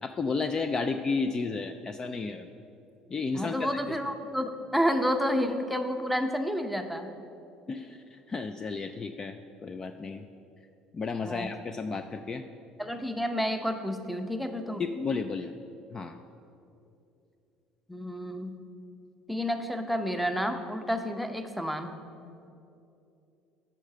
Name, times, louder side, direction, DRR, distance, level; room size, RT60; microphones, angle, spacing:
voice 1, 0.0-2.5 3.1-3.8 7.7-10.3 10.9-12.4 14.8-15.5 15.9-16.2, left 4 dB, 30° left, 8 dB, 0.4 m, -32 dB
voice 2, 3.3-7.1 11.2-11.5 12.8-14.8 17.9-18.5 19.3-21.9, equal, ahead, 7 dB, 0.7 m, -30 dB
8.3 x 5.7 x 6.7 m, 2.7 s
cardioid pair, 105°, 2 cm